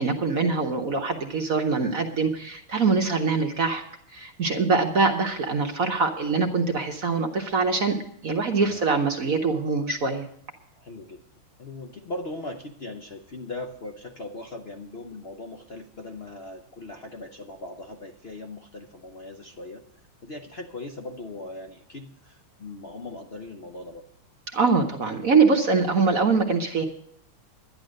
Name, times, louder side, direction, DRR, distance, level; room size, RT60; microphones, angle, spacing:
voice 1, 0.0-3.8 4.1-10.3 24.5-26.9, right 4 dB, 50° right, 3 dB, 1.3 m, -23 dB
voice 2, 10.8-11.2 11.6-19.8 20.2-24.0, left 2 dB, 60° left, 4 dB, 0.6 m, -39 dB
11.5 x 10.5 x 6.4 m, 0.67 s
omnidirectional pair, 2.3 m